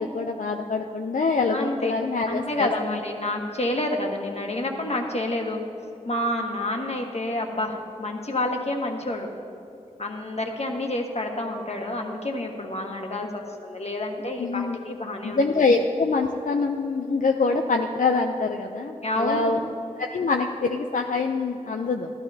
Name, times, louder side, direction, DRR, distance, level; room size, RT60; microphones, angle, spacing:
voice 1, 0.0-3.0 14.4-14.8 15.2-19.6 20.0-22.1, left 4 dB, 75° left, 3 dB, 0.5 m, -25 dB
voice 2, 1.5-1.9 2.3-5.6 6.0-9.3 10.0-15.5 19.0-19.5, left 1 dB, 50° left, 2 dB, 1.3 m, -29 dB
13.0 x 12.5 x 2.8 m, 2.8 s
wide cardioid pair, 40°, 14 cm